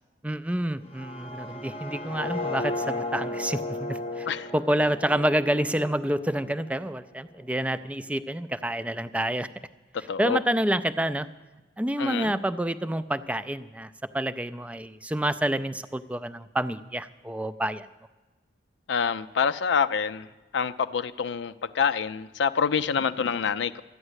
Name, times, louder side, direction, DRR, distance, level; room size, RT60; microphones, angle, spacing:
voice 1, 0.2-4.3 4.5-9.5 10.2-11.3 11.8-17.9, right 1 dB, 5° right, 13 dB, 0.3 m, -28 dB
sound 1, 0.8-6.8, left 2 dB, 30° left, 0.7 m, -35 dB
voice 2, 10.1-10.4 12.0-12.3 18.9-20.3 20.5-23.8, left 6 dB, 75° left, 11 dB, 0.4 m, -26 dB
13.0 x 9.9 x 8.0 m, 1.2 s
head